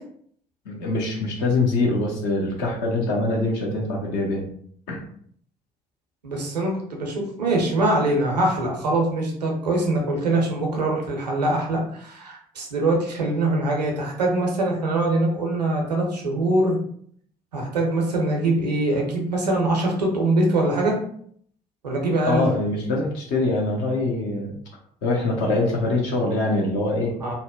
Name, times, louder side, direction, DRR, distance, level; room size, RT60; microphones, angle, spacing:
voice 1, 0.7-4.5 4.9-5.0 22.3-24.5 25.0-27.1, left 2 dB, 65° left, -1 dB, 0.7 m, -23 dB
voice 2, 6.2-16.8 17.5-21.0 21.8-22.5 27.2-27.3, right 2 dB, 85° right, 0 dB, 0.5 m, -23 dB
2.7 x 2.0 x 2.3 m, 0.62 s
figure-of-eight pair, 50°, 21 cm